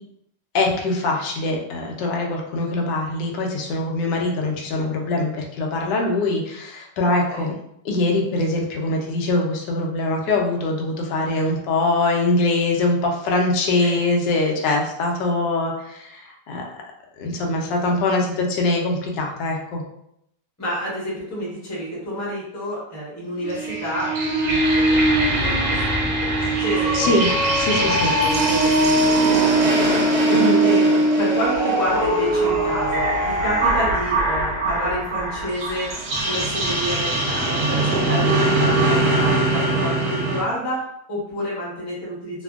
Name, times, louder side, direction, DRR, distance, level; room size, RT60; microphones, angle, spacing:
voice 1, 0.5-7.5 7.8-16.6 17.2-19.8 26.9-28.1 30.3-30.7, left 2 dB, 85° left, 1 dB, 1.2 m, -23 dB
voice 2, 20.6-24.1 24.4-27.4 27.8-28.0 28.2-30.0 30.6-35.9 36.2-42.4, equal, 15° left, -6 dB, 0.6 m, -29 dB
sound 1, 23.3-33.9, right 2 dB, 55° right, 0.7 m, -21 dB
sound 2, 23.5-40.4, right 2 dB, 70° right, 1.1 m, -23 dB
3.3 x 2.1 x 2.3 m, 0.76 s
omnidirectional pair, 1.8 m